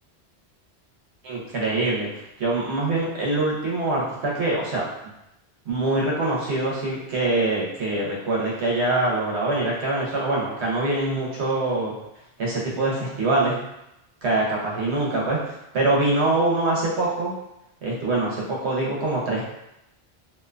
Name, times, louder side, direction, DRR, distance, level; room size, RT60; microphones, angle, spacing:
voice 1, 1.2-4.8 5.7-11.9 12.4-13.6 14.2-17.3 17.8-19.4, right 2 dB, 80° right, -4 dB, 1.1 m, -24 dB
2.7 x 2.2 x 2.4 m, 0.87 s
omnidirectional pair, 1.1 m